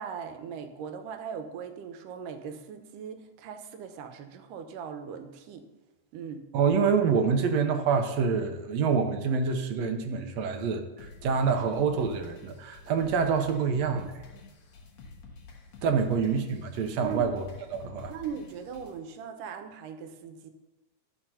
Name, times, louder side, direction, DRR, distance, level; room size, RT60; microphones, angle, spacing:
voice 1, 0.0-5.7 6.1-6.5 15.9-16.0 17.0-17.3 18.1-20.5, right 7 dB, 85° right, 7 dB, 2.5 m, -39 dB
voice 2, 6.5-14.1 15.8-17.4 17.7-18.1, right 5 dB, 70° right, 6 dB, 1.7 m, -26 dB
sound 1, 11.0-19.0, left 4 dB, 60° left, 2.4 m, -49 dB
11.5 x 6.0 x 5.5 m, 1.1 s
omnidirectional pair, 3.7 m